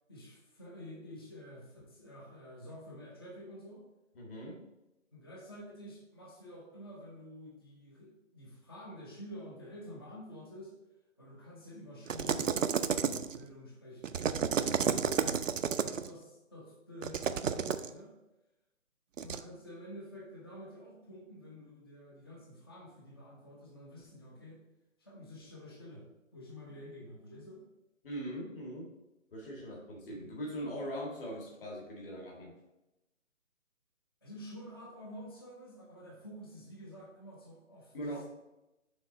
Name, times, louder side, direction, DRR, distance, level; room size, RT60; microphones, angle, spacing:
voice 1, 0.1-3.9 5.1-10.8 11.2-15.4 15.8-18.2 19.2-24.6 25.0-26.1 26.3-27.6 34.2-38.2, equal, 20° left, -2 dB, 0.6 m, -49 dB
voice 2, 4.2-4.6 28.0-28.9 29.3-32.5 37.9-38.3, equal, 45° left, -2 dB, 1.8 m, -41 dB
sound 1, 12.1-13.4 14.0-16.1 17.0-17.9 19.2-19.4, right 7 dB, 75° right, 0.5 m, -31 dB
6.3 x 3.6 x 5.2 m, 0.96 s
figure-of-eight pair, 155°, 39 cm